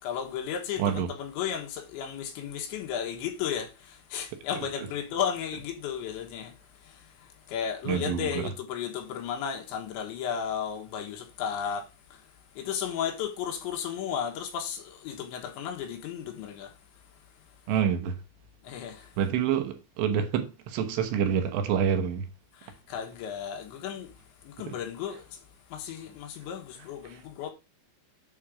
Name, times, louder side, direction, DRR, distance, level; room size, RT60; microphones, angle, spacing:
voice 1, 0.0-17.0 17.4-17.5 18.6-19.2 22.5-27.5, left 8 dB, 85° left, 3.8 m, -34 dB
voice 2, 0.8-1.1 4.6-4.7 7.8-8.5 17.7-18.2 19.2-22.3 24.7-24.8 27.0-27.2, right 8 dB, 75° right, 3.2 m, -27 dB
8.7 x 3.9 x 4.9 m
omnidirectional pair, 5.1 m